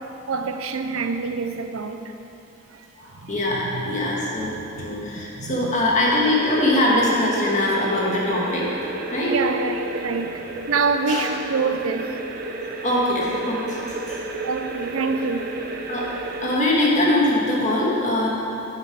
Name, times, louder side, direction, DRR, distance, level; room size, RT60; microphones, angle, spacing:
voice 1, 0.0-2.0 3.2-3.9 4.4-5.6 9.3-12.1 14.4-15.5, right 4 dB, 80° right, 8 dB, 0.6 m, -27 dB
voice 2, 3.0-8.6 9.1-9.4 11.1-11.2 12.8-14.2 15.9-16.1 16.4-18.3, left 1 dB, 35° left, -4 dB, 1.9 m, -22 dB
sound 1, 6.0-16.6, right 2 dB, 45° right, 0.8 m, -32 dB
10.0 x 9.0 x 4.7 m, 2.8 s
head